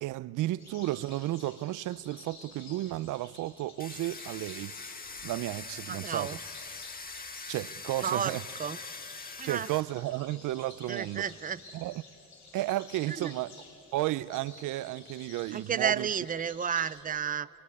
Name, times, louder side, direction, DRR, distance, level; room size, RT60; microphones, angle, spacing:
voice 1, 0.0-4.8 5.2-6.3 7.5-8.4 9.4-11.2 11.7-12.0 12.5-13.5 13.9-16.1, right 16 dB, 85° right, 0.5 m, -33 dB
sound 1, 0.6-17.0, left 4 dB, 65° left, 6.8 m, -52 dB
Domestic sounds home sounds, 3.8-9.8, left 4 dB, 30° left, 1.6 m, -43 dB
voice 2, 5.9-6.4 8.0-8.8 9.4-9.7 10.9-11.6 13.1-13.3 15.5-17.5, right 7 dB, 30° right, 0.6 m, -32 dB
24.0 x 23.5 x 9.7 m
cardioid pair, 90°, 30 cm